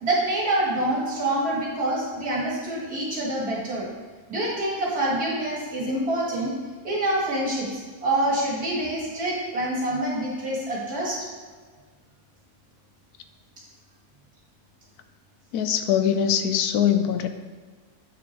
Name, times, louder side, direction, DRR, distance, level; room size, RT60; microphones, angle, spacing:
voice 1, 0.0-3.9 4.3-6.5 6.8-11.2, right 1 dB, 65° right, -5 dB, 2.7 m, -26 dB
voice 2, 15.5-17.3, left 9 dB, 75° left, 9 dB, 1.1 m, -22 dB
8.2 x 6.1 x 4.5 m, 1.5 s
omnidirectional pair, 1.7 m